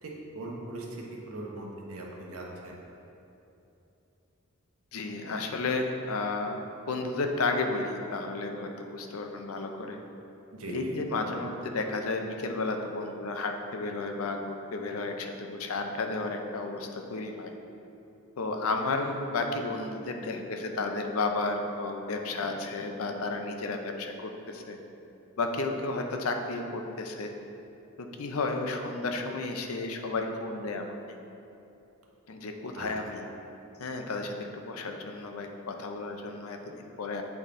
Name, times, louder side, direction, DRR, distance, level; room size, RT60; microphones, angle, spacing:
voice 1, 0.0-2.8 10.5-11.4 19.0-19.1 32.8-32.9, right 2 dB, 80° right, -2 dB, 1.1 m, -40 dB
voice 2, 4.9-10.0 10.7-17.5 18.4-24.8 25.4-27.3 28.0-31.0 32.3-33.2 33.8-37.2, left 3 dB, 80° left, 4 dB, 0.6 m, -32 dB
8.3 x 4.1 x 3.7 m, 2.9 s
head